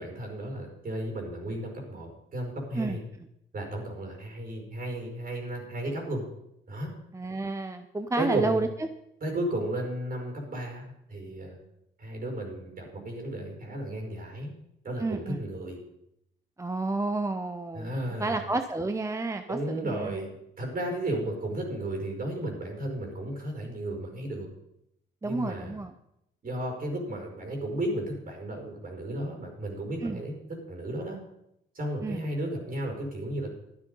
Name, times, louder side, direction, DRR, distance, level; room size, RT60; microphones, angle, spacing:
voice 1, 0.0-3.0 3.5-6.2 6.7-6.9 8.2-8.6 9.2-11.6 12.0-14.5 14.8-15.8 17.7-18.4 19.5-24.5 25.2-25.8 26.4-30.4 30.7-31.2 31.7-33.5, right 1 dB, 45° right, 2 dB, 5.3 m, -34 dB
voice 2, 7.1-8.9 15.0-15.4 16.6-20.2 25.2-25.9 30.0-30.2 32.0-32.2, right 2 dB, 15° right, 8 dB, 0.7 m, -31 dB
12.5 x 9.7 x 5.4 m, 0.81 s
cardioid pair, 90°, 20 cm